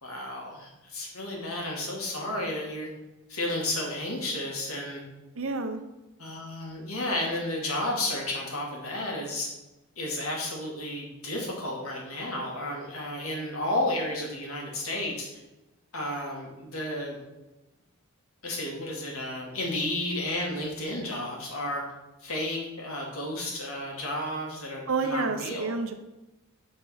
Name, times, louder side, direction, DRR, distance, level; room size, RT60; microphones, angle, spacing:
voice 1, 0.0-2.9 3.3-5.0 6.2-9.5 10.0-15.3 15.9-17.2 18.4-21.8 22.2-25.7, left 1 dB, 90° left, -1 dB, 2.2 m, -32 dB
voice 2, 5.4-5.8 24.9-25.9, right 4 dB, 75° right, 7 dB, 0.8 m, -29 dB
6.6 x 4.1 x 6.3 m, 1.0 s
head